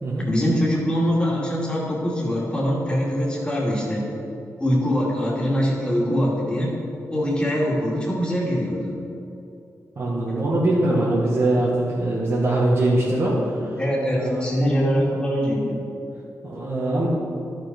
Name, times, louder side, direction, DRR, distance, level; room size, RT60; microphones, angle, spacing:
voice 1, 0.2-4.1 4.6-6.7 7.1-9.0 13.8-15.8, equal, 15° left, -4 dB, 2.3 m, -23 dB
voice 2, 10.0-13.4 14.1-14.4 16.4-17.1, right 2 dB, 40° right, -6 dB, 1.7 m, -22 dB
12.5 x 5.6 x 5.3 m, 2.8 s
wide cardioid pair, 110°, 6 cm